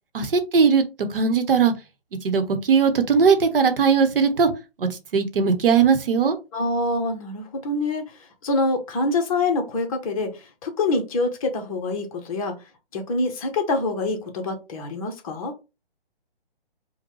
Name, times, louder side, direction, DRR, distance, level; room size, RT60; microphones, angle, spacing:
voice 1, 0.1-0.8 1.1-1.7 2.2-4.5 5.1-6.4, right 6 dB, 65° right, 1.0 m, -19 dB
voice 2, 6.5-8.1 8.4-12.6 12.9-15.5, left 2 dB, 35° left, 1.0 m, -25 dB
5.3 x 2.3 x 3.0 m
hypercardioid pair, 145°, 30 cm